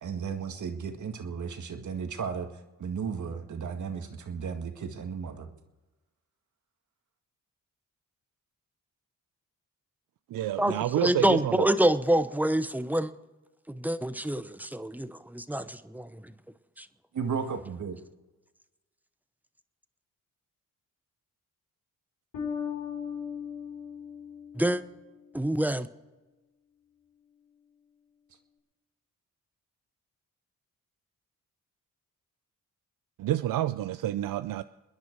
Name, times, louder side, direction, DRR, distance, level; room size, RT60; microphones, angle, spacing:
voice 1, 0.0-5.5 17.1-18.0, right 6 dB, 60° right, 2.0 m, -34 dB
voice 2, 10.3-11.7 33.2-34.6, right 13 dB, 80° right, 0.6 m, -29 dB
voice 3, 11.0-13.1 13.7-16.1 16.8-16.9 24.6-24.8 25.3-25.9, right 1 dB, 5° right, 0.9 m, -26 dB
Bass guitar, 22.3-25.4, left 7 dB, 85° left, 6.1 m, -37 dB
28.5 x 10.5 x 4.7 m
cardioid pair, 75°, 33 cm